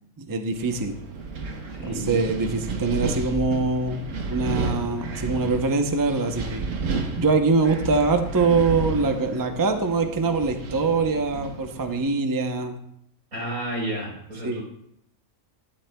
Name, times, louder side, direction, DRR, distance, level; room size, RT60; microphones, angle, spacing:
voice 1, 0.2-0.9 1.8-6.7 7.2-12.8 14.4-14.6, right 3 dB, 20° right, 6 dB, 0.5 m, -23 dB
Wind, 0.5-12.0, right 3 dB, 65° right, 1.4 m, -32 dB
voice 2, 1.7-2.2 13.3-14.6, right 1 dB, 90° right, -2 dB, 4.6 m, -31 dB
13.0 x 10.5 x 2.3 m, 0.73 s
omnidirectional pair, 1.5 m